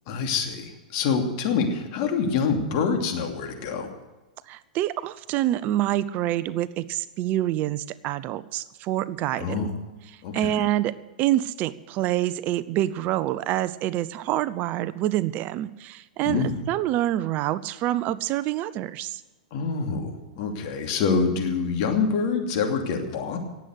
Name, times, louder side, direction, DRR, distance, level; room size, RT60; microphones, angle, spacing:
voice 1, 0.1-0.6 0.9-3.9 9.4-9.8 10.2-10.3 16.2-16.6 19.5-20.1 20.4-23.4, left 5 dB, 50° left, 3 dB, 2.8 m, -25 dB
voice 2, 4.5-9.7 10.1-19.2, right 13 dB, 40° right, 16 dB, 0.6 m, -27 dB
18.5 x 8.0 x 7.9 m, 1.1 s
hypercardioid pair, 110°, 4 cm